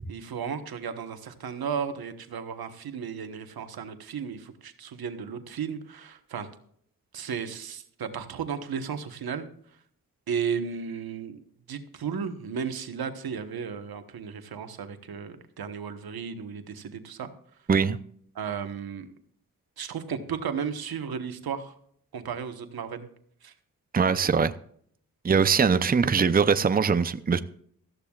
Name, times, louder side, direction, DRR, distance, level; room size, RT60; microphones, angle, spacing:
voice 1, 0.1-6.5 7.1-9.5 10.3-11.4 11.7-17.3 18.3-19.1 19.8-21.8 22.1-23.1 23.4-23.5, right 7 dB, 85° right, 8 dB, 1.3 m, -34 dB
voice 2, 23.9-24.5 25.2-27.4, right 5 dB, 25° right, 12 dB, 0.6 m, -22 dB
17.5 x 14.0 x 2.4 m, 0.63 s
cardioid pair, 60°, 36 cm